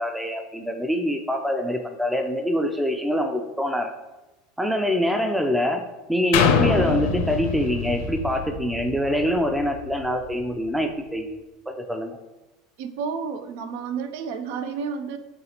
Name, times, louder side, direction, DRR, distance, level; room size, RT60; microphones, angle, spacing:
voice 1, 0.0-3.9 4.6-5.8 6.1-11.4 11.7-12.2, equal, 5° right, 5 dB, 0.4 m, -25 dB
sound 1, 6.3-10.1 10.6-10.7, left 5 dB, 65° left, 0.5 m, -25 dB
voice 2, 12.8-15.2, right 6 dB, 65° right, 10 dB, 0.4 m, -31 dB
5.4 x 3.0 x 2.9 m, 1.0 s
hypercardioid pair, 85°, 0 cm